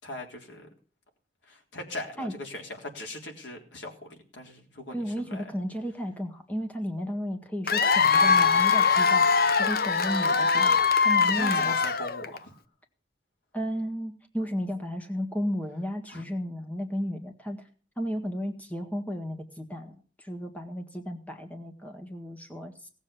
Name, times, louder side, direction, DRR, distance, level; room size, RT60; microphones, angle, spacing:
voice 1, 0.0-0.7 1.5-5.5 11.2-12.6 16.1-16.2, left 1 dB, 85° left, 2 dB, 3.7 m, -40 dB
voice 2, 4.9-9.3 9.6-10.8 11.0-11.7 13.5-17.7 18.0-22.9, equal, 10° left, 3 dB, 1.7 m, -33 dB
Cheering / Applause / Crowd, 7.7-12.4, left 5 dB, 55° left, 0.7 m, -22 dB
18.0 x 7.4 x 7.0 m, 0.41 s
head